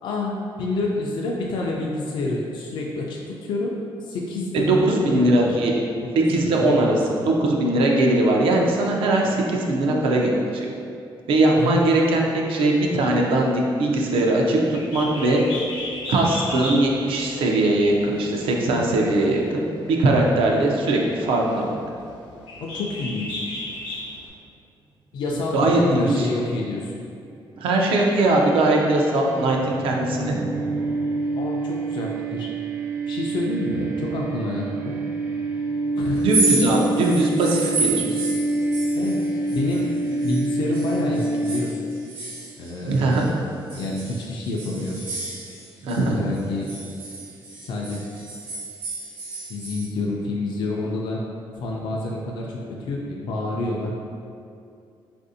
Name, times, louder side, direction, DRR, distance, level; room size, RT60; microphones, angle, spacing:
voice 1, 0.0-3.7 4.0-5.6 6.2-7.3 11.6-12.2 22.6-23.6 25.1-26.9 31.4-32.5 33.1-35.0 36.0-36.3 37.9-38.2 38.9-39.2 39.5-39.9 40.2-41.8 42.6-43.2 43.7-45.1 46.1-46.7 47.6-48.0 49.5-51.2 51.6-53.9, left 2 dB, 60° left, -2 dB, 0.3 m, -28 dB
voice 2, 4.5-5.7 6.3-6.9 7.2-10.7 11.3-15.4 16.1-19.6 19.9-21.7 25.5-26.3 27.6-30.4 36.2-38.0 42.8-43.3 45.8-46.2, right 2 dB, 85° right, 0 dB, 0.5 m, -20 dB
Bird, 14.7-24.3, left 1 dB, 75° left, 0.8 m, -35 dB
sound 1, 28.1-42.0, right 2 dB, 30° right, 0.4 m, -27 dB
sound 2, 36.2-40.4 40.7-43.3 43.7-46.0 46.3-49.8, right 3 dB, 70° right, 0.8 m, -30 dB
4.0 x 2.5 x 2.6 m, 2.5 s
cardioid pair, 155°, 9 cm